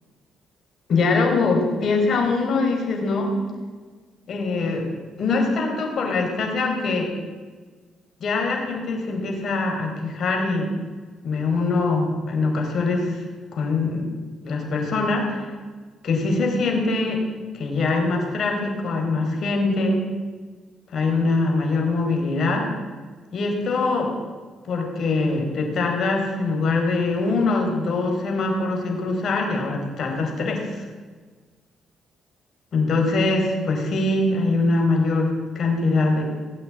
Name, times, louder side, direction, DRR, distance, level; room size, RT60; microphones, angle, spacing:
voice 1, 0.9-3.4 4.3-4.9 5.2-7.1 8.2-10.7 11.2-13.2 13.5-14.1 14.4-15.5 16.0-17.2 17.5-20.0 20.9-22.7 23.3-24.1 24.6-30.8 32.7-36.2, left 3 dB, 60° left, 2 dB, 4.4 m, -23 dB
18.5 x 8.4 x 8.7 m, 1.4 s
cardioid pair, 90°, 0 cm